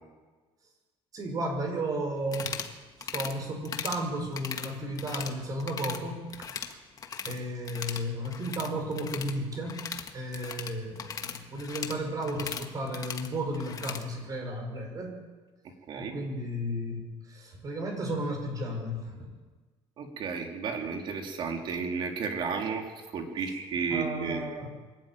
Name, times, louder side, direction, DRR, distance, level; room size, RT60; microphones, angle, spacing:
voice 1, 1.1-2.6 3.0-6.4 7.2-15.1 16.0-19.3 23.9-24.7, right 1 dB, 35° right, 3 dB, 5.6 m, -34 dB
sound 1, 2.2-2.7 3.0-3.3 3.6-4.0 4.3-5.3 5.6-6.0 6.3-7.4 7.6-14.0, left 7 dB, 35° left, 1.5 m, -38 dB
voice 2, 20.0-22.9 23.1-24.5, right 5 dB, 50° right, 3 dB, 3.3 m, -32 dB
24.0 x 12.5 x 9.2 m, 1.3 s
cardioid pair, 150°, 11 cm